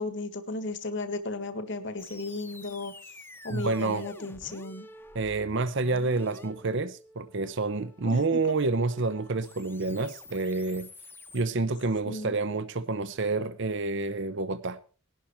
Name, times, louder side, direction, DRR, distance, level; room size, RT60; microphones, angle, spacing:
voice 1, 0.0-2.9 3.4-4.9 8.0-8.2 8.5-8.6 12.0-12.3, left 2 dB, 55° left, 1.7 m, -35 dB
sound 1, 2.0-11.4, left 2 dB, 10° left, 1.0 m, -49 dB
voice 2, 3.5-4.0 5.1-10.9 11.3-14.8, right 3 dB, 55° right, 0.7 m, -28 dB
19.0 x 12.0 x 4.4 m
head